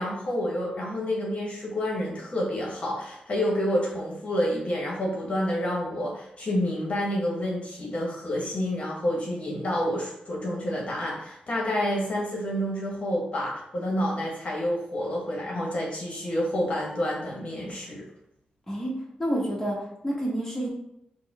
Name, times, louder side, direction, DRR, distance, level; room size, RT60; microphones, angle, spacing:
voice 1, 0.0-18.0, equal, 50° left, -3 dB, 1.0 m, -29 dB
voice 2, 18.7-20.7, right 1 dB, 10° left, -4 dB, 1.2 m, -29 dB
4.1 x 2.2 x 3.5 m, 0.77 s
cardioid pair, 70°, 3 cm